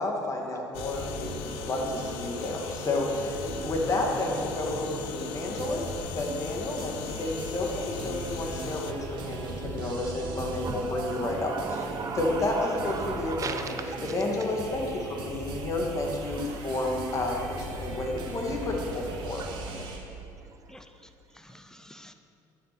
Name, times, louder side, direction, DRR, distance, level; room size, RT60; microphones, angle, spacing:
voice 1, 0.0-5.9 6.2-11.5 12.2-13.6 14.1-19.4, left 2 dB, 40° left, 0 dB, 1.9 m, -31 dB
sound 1, 0.7-8.9, left 12 dB, 80° left, 0.3 m, -39 dB
sound 2, 0.8-20.0, right 2 dB, 65° right, 1.5 m, -39 dB
voice 2, 10.6-14.1 19.4-20.8 21.5-21.6, right 5 dB, 40° right, 6 dB, 1.0 m, -37 dB
voice 3, 19.5-19.8 20.7-22.1, left 1 dB, 5° left, 8 dB, 0.7 m, -52 dB
9.6 x 6.4 x 5.8 m, 2.7 s
supercardioid pair, 75°, 8 cm